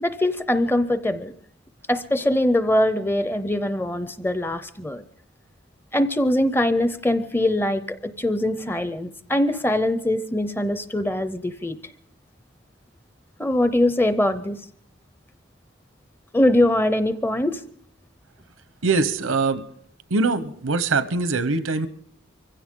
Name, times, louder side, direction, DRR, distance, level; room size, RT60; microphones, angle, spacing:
voice 1, 0.0-1.3 1.9-5.0 5.9-11.8 13.4-14.6 16.3-17.6, left 1 dB, 10° left, 0.5 m, -22 dB
voice 2, 18.8-19.6 20.1-21.9, right 3 dB, 90° right, 0.9 m, -22 dB
23.5 x 16.0 x 3.7 m
head